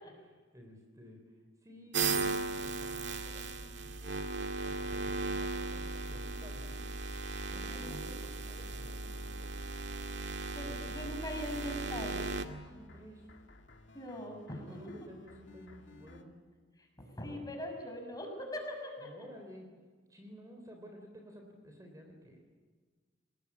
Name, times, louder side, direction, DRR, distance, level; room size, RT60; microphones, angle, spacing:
voice 1, 0.0-4.3 4.6-6.8 7.5-9.6 10.6-11.2 12.6-13.3 14.5-16.3 19.0-19.7 20.1-22.4, equal, 20° right, 3 dB, 3.8 m, -53 dB
sound 1, 1.9-12.5, right 3 dB, 70° right, 2.0 m, -37 dB
voice 2, 7.7-8.1 10.5-12.3 13.9-14.6 14.8-14.9 16.8-16.9 17.2-19.3, equal, 20° left, 3 dB, 6.1 m, -41 dB
sound 2, 10.9-16.2, left 2 dB, 75° left, 2.5 m, -57 dB
28.5 x 20.0 x 8.7 m, 1.4 s
head